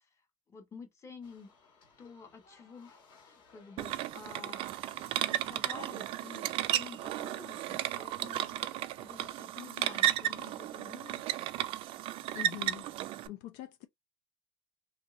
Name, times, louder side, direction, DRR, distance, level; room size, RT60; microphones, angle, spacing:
voice 1, 0.0-1.5 2.0-11.2, left 5 dB, 25° left, 1.1 m, -51 dB
sound 1, 1.2-11.6, left 4 dB, 50° left, 1.6 m, -62 dB
sound 2, 3.8-13.3, right 13 dB, 55° right, 0.4 m, -34 dB
voice 2, 12.3-12.9 13.3-13.9, left 14 dB, 75° left, 0.5 m, -43 dB
3.1 x 2.7 x 2.5 m
supercardioid pair, 115°, 11 cm